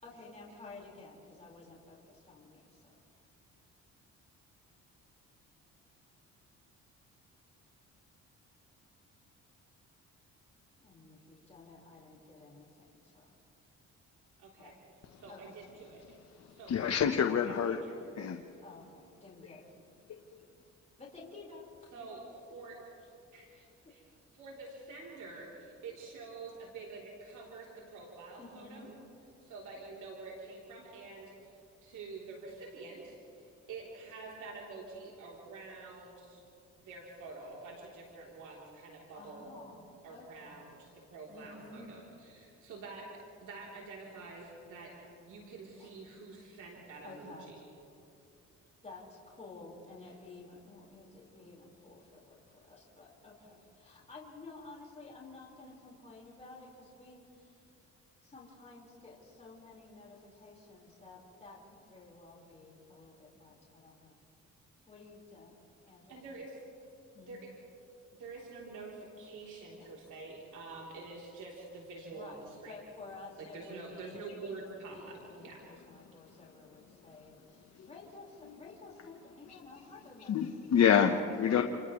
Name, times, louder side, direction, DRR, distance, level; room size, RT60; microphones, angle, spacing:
voice 1, 0.0-3.0 10.8-13.2 14.6-14.8 15.3-15.6 18.6-18.9 19.2-19.7 21.0-22.1 23.5-23.9 28.4-28.9 39.1-40.6 41.3-41.9 45.8-46.0 47.0-47.5 48.8-57.6 58.2-64.2 64.9-65.6 65.9-66.2 67.1-67.4 69.8-69.9 72.1-80.8, left 3 dB, 20° left, -4 dB, 4.8 m, -52 dB
voice 2, 14.4-14.7 15.2-16.0 16.5-16.7 17.4-18.0 21.9-22.2 22.5-22.8 23.3-24.1 24.3-28.9 29.4-36.4 36.8-39.5 40.0-43.1 43.4-47.6 50.0-50.1 66.1-66.6 67.2-67.5 68.1-72.8 73.4-75.6, right 3 dB, 80° right, -3 dB, 3.5 m, -47 dB
voice 3, 16.7-17.8 18.2-18.4 77.8-77.9 80.3-81.6, left 8 dB, 60° left, 4 dB, 1.1 m, -27 dB
29.0 x 28.5 x 3.2 m, 2.7 s
cardioid pair, 90°, 30 cm